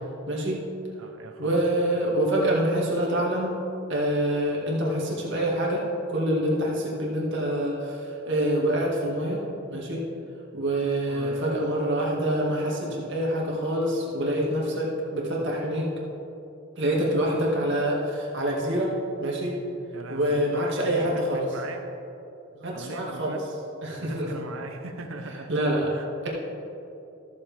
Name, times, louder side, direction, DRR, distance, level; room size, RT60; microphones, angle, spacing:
voice 1, 0.3-0.6 1.4-3.6 3.9-9.4 9.7-10.0 10.5-15.9 16.8-19.6 20.1-21.4 22.6-23.3 23.8-24.3 25.5-25.9, right 1 dB, 65° right, -3 dB, 2.0 m, -26 dB
voice 2, 1.0-1.8 11.1-11.6 19.9-21.9 22.7-23.4 24.0-25.6 25.9-26.1, right 2 dB, 85° right, 5 dB, 0.9 m, -39 dB
14.0 x 7.2 x 3.5 m, 2.8 s
head